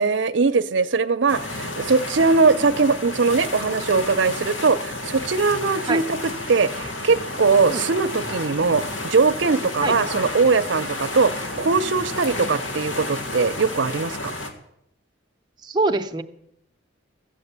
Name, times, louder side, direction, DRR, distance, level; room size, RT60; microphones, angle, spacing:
voice 1, 0.0-14.3, right 4 dB, 75° right, 10 dB, 0.6 m, -21 dB
sound 1, 1.3-14.5, left 2 dB, 90° left, 1.8 m, -31 dB
voice 2, 15.6-16.2, right 3 dB, 20° right, 4 dB, 0.7 m, -24 dB
13.5 x 7.8 x 8.1 m, 0.76 s
head